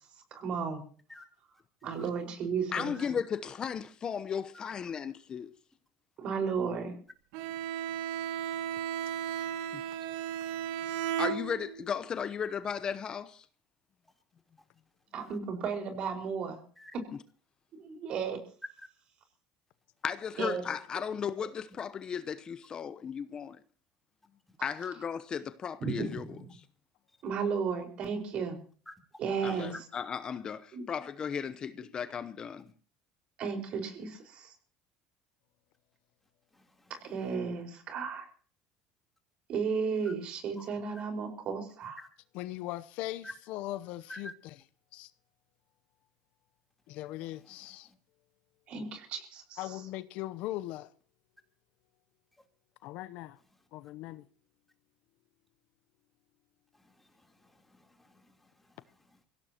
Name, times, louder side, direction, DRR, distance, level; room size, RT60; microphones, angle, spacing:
voice 1, 0.3-0.8 1.8-2.9 6.2-6.9 15.1-16.6 17.8-18.4 20.4-20.6 25.8-26.5 27.2-28.6 29.2-29.7 30.7-30.8 33.4-34.5 37.0-38.3 39.5-42.0 48.7-49.8, right 5 dB, 55° right, 5.0 m, -34 dB
voice 2, 2.7-5.5 9.7-9.8 11.2-13.5 20.0-23.6 24.6-26.6 29.4-32.7, left 7 dB, 40° left, 0.9 m, -35 dB
Bowed string instrument, 7.3-11.9, right 10 dB, 75° right, 1.3 m, -35 dB
voice 3, 36.5-37.1 40.6-40.7 42.0-42.1 43.2-43.3 44.1-44.3 47.3-47.9 56.7-59.3, left 1 dB, 10° left, 3.5 m, -51 dB
voice 4, 42.3-44.5 44.9-45.1 46.9-47.9 49.6-50.9 52.8-53.4 53.7-54.2, left 16 dB, 70° left, 0.8 m, -39 dB
23.5 x 16.5 x 3.0 m
supercardioid pair, 90°, 2 cm